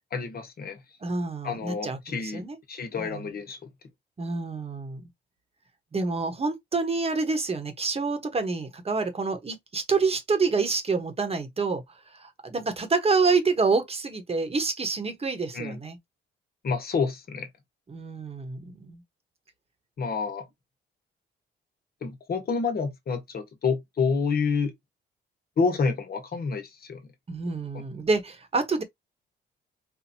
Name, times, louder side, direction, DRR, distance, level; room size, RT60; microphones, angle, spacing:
voice 1, 0.1-0.8 1.4-3.6 15.5-15.8 16.6-17.5 20.0-20.4 22.0-24.7 25.6-27.0 27.7-27.8, left 5 dB, 50° left, 1.3 m, -28 dB
voice 2, 1.0-2.6 3.0-3.3 4.2-5.0 5.9-11.8 12.1-16.0 17.9-19.0 27.3-28.8, right 4 dB, 30° right, 1.3 m, -27 dB
4.5 x 2.5 x 2.8 m
cardioid pair, 90°, 20 cm